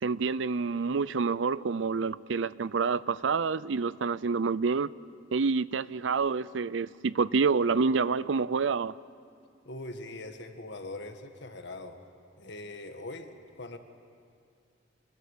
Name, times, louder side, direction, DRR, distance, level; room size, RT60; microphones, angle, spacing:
voice 1, 0.0-4.9 5.3-8.9, right 5 dB, 80° right, 19 dB, 0.5 m, -28 dB
voice 2, 9.7-12.0 12.4-13.8, left 2 dB, 65° left, 6 dB, 1.8 m, -42 dB
26.5 x 20.0 x 8.4 m, 2.3 s
head